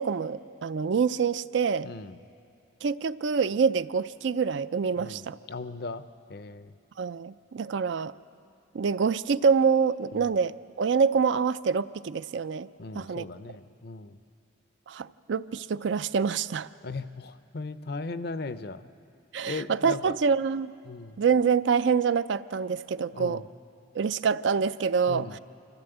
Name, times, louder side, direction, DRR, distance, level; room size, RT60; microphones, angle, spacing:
voice 1, 0.0-1.9 2.8-5.4 7.0-8.1 8.7-12.7 12.9-13.3 14.9-16.7 19.3-20.7 21.2-23.4 23.9-25.4, right 6 dB, 70° right, 15 dB, 0.4 m, -26 dB
voice 2, 1.8-2.2 5.0-6.0 6.3-6.7 10.1-10.3 12.8-14.2 16.8-18.9 19.4-20.1 20.8-21.2 23.1-23.4 25.1-25.4, left 3 dB, 55° left, 13 dB, 0.6 m, -37 dB
25.5 x 14.5 x 7.9 m, 2.6 s
head